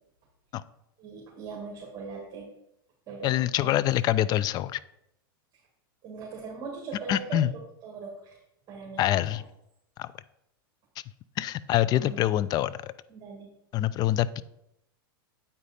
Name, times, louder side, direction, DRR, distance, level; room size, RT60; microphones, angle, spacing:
voice 1, 1.0-2.4 3.1-3.8 6.0-7.4 7.8-8.3 8.7-9.0 11.9-12.2 13.1-13.5, right 4 dB, 30° right, -3 dB, 2.0 m, -40 dB
voice 2, 3.2-4.8 7.1-7.5 9.0-9.4 10.0-10.1 11.4-12.9 13.7-14.4, left 13 dB, 35° left, 18 dB, 0.3 m, -25 dB
8.6 x 4.8 x 4.2 m, 0.81 s
hypercardioid pair, 120°, 12 cm